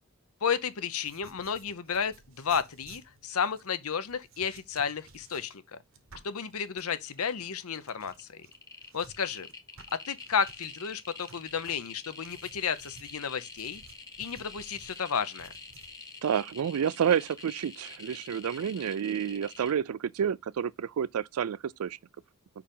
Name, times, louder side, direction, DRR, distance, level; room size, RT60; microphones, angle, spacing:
voice 1, 0.4-5.6 6.2-8.5 8.9-9.5 9.9-13.8 14.2-15.5, left 6 dB, 85° left, 0.8 m, -32 dB
sound 1, 1.0-10.7 11.2-15.9, right 4 dB, 65° right, 1.1 m, -56 dB
sound 2, 6.3-6.6 6.8-7.4 7.8-19.7, left 4 dB, 15° left, 1.0 m, -47 dB
voice 2, 16.2-22.0, right 8 dB, 90° right, 0.4 m, -29 dB
5.1 x 4.7 x 5.4 m
head